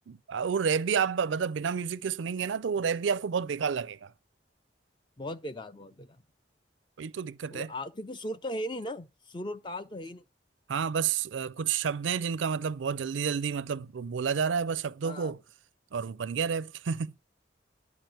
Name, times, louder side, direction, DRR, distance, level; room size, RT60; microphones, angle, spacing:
voice 1, 0.1-4.1 7.0-7.7 10.7-15.4 15.9-17.1, right 6 dB, 85° right, 0.4 m, -30 dB
voice 2, 5.2-6.2 7.5-10.2 15.0-15.3, left 1 dB, 25° left, 0.5 m, -38 dB
10.5 x 4.8 x 7.7 m
head